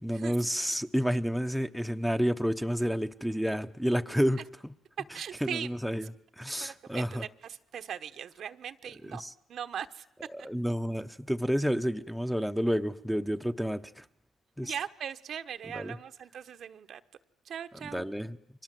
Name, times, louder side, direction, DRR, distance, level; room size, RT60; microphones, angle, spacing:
voice 1, 0.0-4.4 5.4-6.0 6.4-7.2 9.2-9.3 10.3-14.0 14.6-14.7 15.7-16.0 17.9-18.4, equal, ahead, 1.1 m, -30 dB
voice 2, 5.1-5.7 6.6-9.2 9.5-10.0 14.6-17.0 17.4-18.1, right 8 dB, 65° right, 1.1 m, -39 dB
30.0 x 24.5 x 7.8 m
cardioid pair, 90°, 0 cm